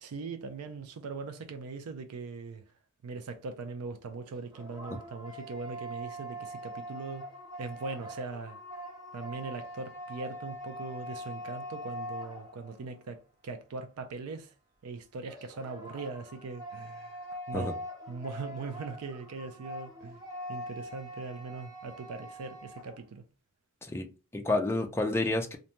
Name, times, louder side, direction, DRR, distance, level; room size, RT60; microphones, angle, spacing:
voice 1, 0.0-2.6 3.0-7.2 7.6-8.6 9.1-14.5 14.8-17.2 17.5-17.8 18.1-20.2 20.5-23.2, right 4 dB, 75° right, 0.4 m, -40 dB
sound 1, 4.2-13.0 15.3-23.0, equal, 20° right, 0.8 m, -43 dB
voice 2, 23.8-25.6, left 2 dB, 10° left, 0.4 m, -30 dB
2.6 x 2.1 x 2.9 m
head